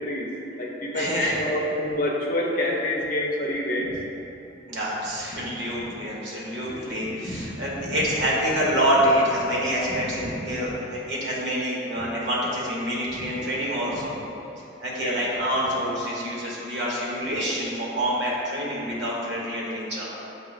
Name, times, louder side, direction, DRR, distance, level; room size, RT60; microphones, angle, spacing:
voice 1, 0.0-3.9 6.7-6.9 15.0-15.2, left 1 dB, 50° left, -2 dB, 0.6 m, -27 dB
voice 2, 0.9-1.4 3.8-4.0 4.7-14.2 14.8-20.1, equal, 85° right, -5 dB, 1.2 m, -26 dB
8.0 x 2.7 x 2.4 m, 2.9 s
head